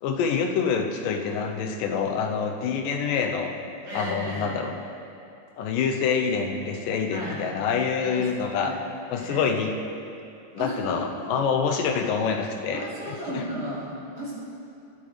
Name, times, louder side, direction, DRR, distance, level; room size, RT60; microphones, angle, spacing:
voice 1, 0.0-3.5 3.9-4.7 5.6-8.8 9.1-9.7 10.6-13.5, left 6 dB, 85° left, 4 dB, 2.3 m, -26 dB
voice 2, 3.8-4.6 7.1-7.4 8.0-8.3 8.6-8.7 9.1-9.5 10.6-11.0 12.7-14.3, equal, 40° right, -8 dB, 3.1 m, -34 dB
19.0 x 8.5 x 3.2 m, 2.6 s
omnidirectional pair, 3.9 m